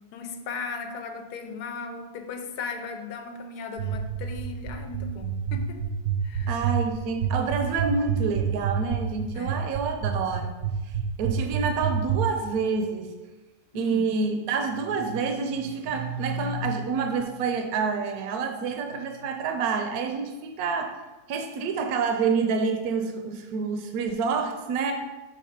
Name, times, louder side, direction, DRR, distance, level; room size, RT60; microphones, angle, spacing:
voice 1, 0.1-5.8 6.2-6.6 9.3-9.7 13.7-14.1, left 4 dB, 85° left, 6 dB, 1.2 m, -37 dB
sound 1, 3.8-12.2, right 11 dB, 55° right, 0.7 m, -27 dB
voice 2, 6.5-10.6 10.8-13.1 13.7-21.0 21.3-24.9, right 5 dB, 75° right, 5 dB, 1.0 m, -28 dB
5.4 x 3.4 x 5.0 m, 1.2 s
omnidirectional pair, 1.7 m